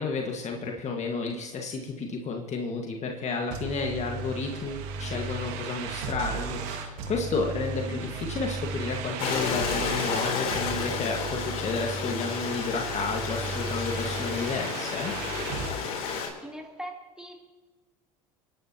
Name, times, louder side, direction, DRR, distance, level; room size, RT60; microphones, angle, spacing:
voice 1, 0.0-15.1, left 4 dB, 40° left, 2 dB, 1.7 m, -32 dB
sound 1, 3.5-15.7, right 4 dB, 65° right, 1.9 m, -35 dB
Stream, 9.2-16.3, left 5 dB, 65° left, 3.7 m, -31 dB
voice 2, 16.4-17.3, equal, 5° right, -1 dB, 3.6 m, -40 dB
29.0 x 11.0 x 3.0 m, 1.3 s
hypercardioid pair, 75°, 19 cm